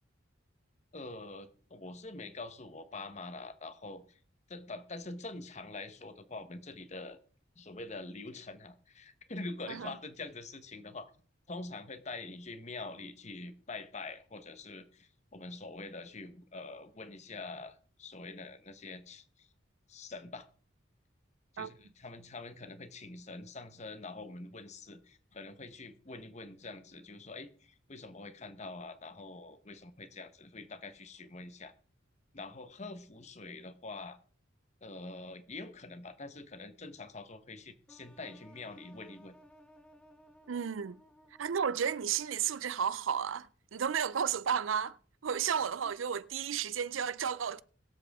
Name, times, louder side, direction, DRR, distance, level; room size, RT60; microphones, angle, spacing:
voice 1, 0.9-4.0 4.5-7.2 7.6-11.1 11.5-19.5 19.9-20.5 21.5-31.7 32.3-34.2 34.8-39.3 45.8-45.9, left 3 dB, 35° left, 1.0 m, -45 dB
sound 1, 37.9-42.7, equal, 5° left, 1.5 m, -60 dB
voice 2, 40.5-41.0 41.4-45.0 45.2-47.6, right 7 dB, 90° right, 0.5 m, -33 dB
22.0 x 7.6 x 3.6 m
head